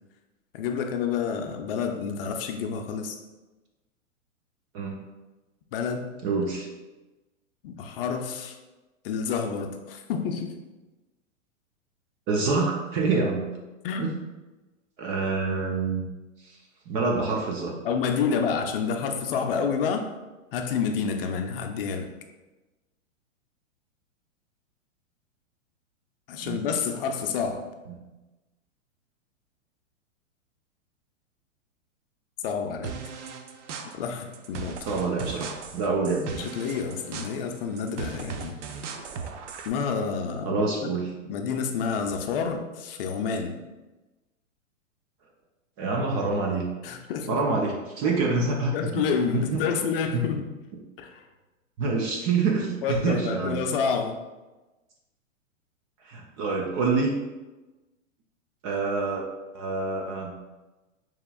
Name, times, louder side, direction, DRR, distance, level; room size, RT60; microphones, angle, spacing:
voice 1, 0.5-3.2 5.7-6.1 7.6-8.6 9.0-10.5 13.1-13.2 13.8-14.1 17.8-20.1 20.5-22.1 26.3-27.6 32.4-32.9 33.9-34.9 36.3-38.6 39.7-40.9 41.3-43.6 46.8-47.4 48.7-50.4 51.0-51.2 52.8-54.2, left 6 dB, 45° left, 5 dB, 0.6 m, -29 dB
voice 2, 6.2-6.7 12.3-13.4 14.0-14.1 15.0-16.0 16.4-16.5 16.9-17.7 26.4-26.6 27.9-28.0 34.9-36.3 40.5-41.1 45.8-46.7 47.3-49.0 49.3-49.6 50.1-50.3 51.8-53.6 56.1-57.1 58.6-59.2 59.5-60.3, right 3 dB, 25° right, 0 dB, 0.4 m, -26 dB
sound 1, 32.8-39.7, right 5 dB, 65° right, 0.6 m, -38 dB
6.6 x 3.0 x 2.3 m, 1.1 s
hypercardioid pair, 110°, 39 cm